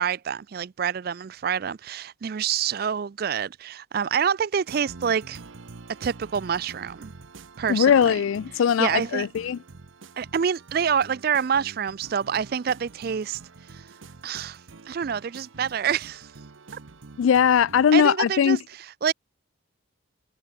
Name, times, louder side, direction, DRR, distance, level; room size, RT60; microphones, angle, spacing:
voice 1, 0.0-5.4 6.0-7.1 7.6-8.2 8.8-9.3 10.2-13.4 13.7-13.8 14.2-14.6 14.9-16.3 17.9-18.6 19.0-19.1, right 7 dB, 45° right, 0.4 m, -27 dB
regal bank infomercial, 4.7-18.1, right 3 dB, 70° right, 0.8 m, -46 dB
voice 2, 7.7-9.6 17.2-18.6, left 8 dB, 75° left, 0.3 m, -20 dB
head